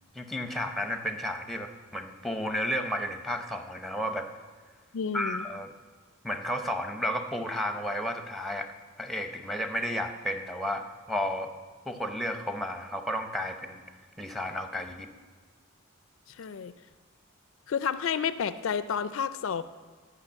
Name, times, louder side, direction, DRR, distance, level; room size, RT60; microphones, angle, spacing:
voice 1, 0.1-4.3 5.1-5.7 6.2-8.7 9.0-11.5 11.9-13.8 14.2-15.1, equal, ahead, 6 dB, 0.7 m, -32 dB
voice 2, 4.9-5.5 16.4-16.7 17.7-19.6, left 7 dB, 65° left, 13 dB, 0.4 m, -30 dB
11.0 x 5.9 x 8.8 m, 1.4 s
head